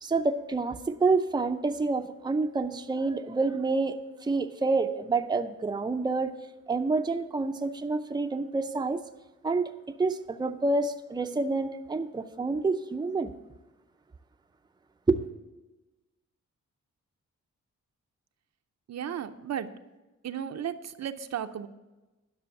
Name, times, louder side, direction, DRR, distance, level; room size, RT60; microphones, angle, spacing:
voice 1, 0.0-4.0 4.2-6.3 6.7-9.0 9.4-9.7 10.0-13.3 15.1-15.2, right 3 dB, 15° right, 6 dB, 0.6 m, -28 dB
voice 2, 18.9-19.7 20.2-21.7, right 9 dB, 60° right, 9 dB, 0.6 m, -34 dB
10.5 x 6.2 x 8.1 m, 1.1 s
cardioid pair, 100°, 29 cm